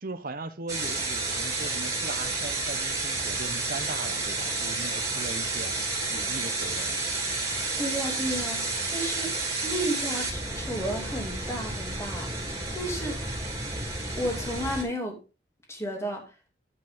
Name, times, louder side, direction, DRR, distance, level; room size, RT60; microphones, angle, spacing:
voice 1, 0.0-5.8 6.1-7.0, right 3 dB, 50° right, 0.9 m, -39 dB
sound 1, 0.7-14.8, right 3 dB, 20° right, 2.9 m, -31 dB
voice 2, 7.4-9.3 9.6-13.2 14.2-15.2 15.7-16.3, equal, 15° left, 2.6 m, -33 dB
10.5 x 8.2 x 3.7 m
head